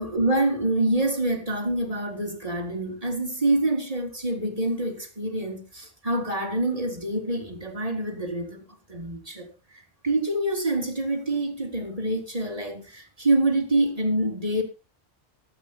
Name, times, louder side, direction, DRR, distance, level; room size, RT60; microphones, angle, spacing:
voice 1, 0.0-8.6 8.9-14.6, right 2 dB, 30° right, 3.5 m, -26 dB
23.5 x 9.0 x 3.0 m
omnidirectional pair, 1.2 m